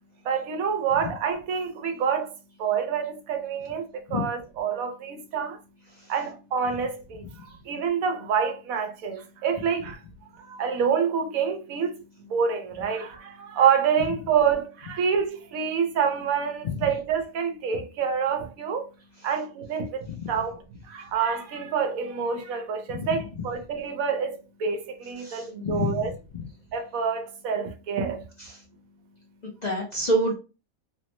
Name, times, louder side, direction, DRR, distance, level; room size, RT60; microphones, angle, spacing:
voice 1, 0.2-5.6 6.1-10.0 10.4-18.9 19.2-26.1 26.7-28.3, right 7 dB, 90° right, 1.1 m, -27 dB
voice 2, 25.2-26.0 29.4-30.3, equal, 50° left, 0.5 m, -27 dB
3.1 x 2.0 x 2.9 m
omnidirectional pair, 1.4 m